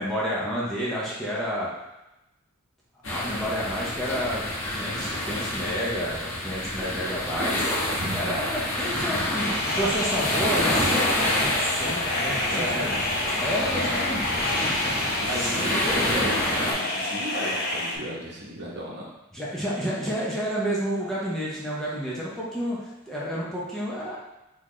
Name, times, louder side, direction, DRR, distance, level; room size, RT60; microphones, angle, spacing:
voice 1, 0.0-1.7 3.1-4.4 4.7-14.9 15.2-15.7 19.3-24.2, equal, ahead, -7 dB, 0.8 m, -30 dB
sound 1, 3.0-16.7, left 1 dB, 70° left, 1.3 m, -28 dB
voice 2, 7.9-8.4 12.5-13.0 15.2-19.1, equal, 50° right, -3 dB, 1.0 m, -34 dB
sound 2, 9.4-18.0, left 2 dB, 45° left, 0.6 m, -28 dB
4.1 x 3.7 x 3.2 m, 0.94 s
head